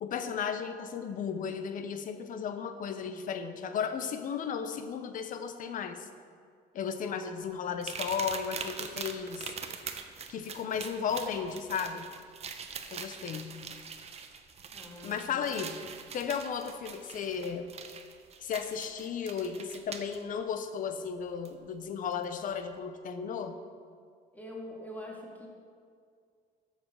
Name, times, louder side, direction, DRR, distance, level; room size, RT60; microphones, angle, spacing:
voice 1, 0.0-6.1 6.7-9.5 10.3-12.1 12.9-13.6 15.0-15.8 16.1-17.7 18.4-23.6, left 7 dB, 50° left, 9 dB, 0.8 m, -35 dB
voice 2, 7.0-7.3 14.7-15.4 24.3-25.5, left 1 dB, 10° left, -2 dB, 1.9 m, -44 dB
sound 1, 7.8-20.2 21.4-21.5 22.1-22.2, right 6 dB, 40° right, 0.8 m, -43 dB
7.8 x 6.7 x 6.3 m, 2.1 s
cardioid pair, 110°, 17 cm